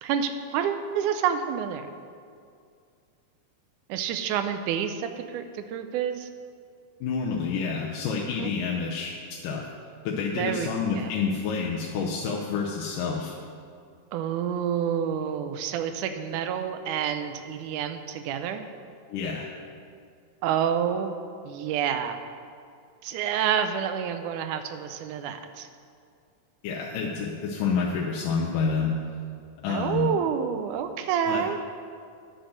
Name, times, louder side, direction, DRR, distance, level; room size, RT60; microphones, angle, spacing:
voice 1, 0.0-1.9 3.9-6.3 8.4-8.5 10.4-11.1 14.1-18.6 20.4-21.2 21.4-22.2 23.0-25.7 29.7-31.6, right 8 dB, 80° right, 8 dB, 2.0 m, -28 dB
voice 2, 7.0-9.1 9.4-9.7 10.1-13.4 19.1-19.5 26.6-28.9 29.6-30.1 31.3-31.4, left 5 dB, 80° left, -3 dB, 2.4 m, -28 dB
10.0 x 6.1 x 6.4 m, 2.3 s
omnidirectional pair, 3.7 m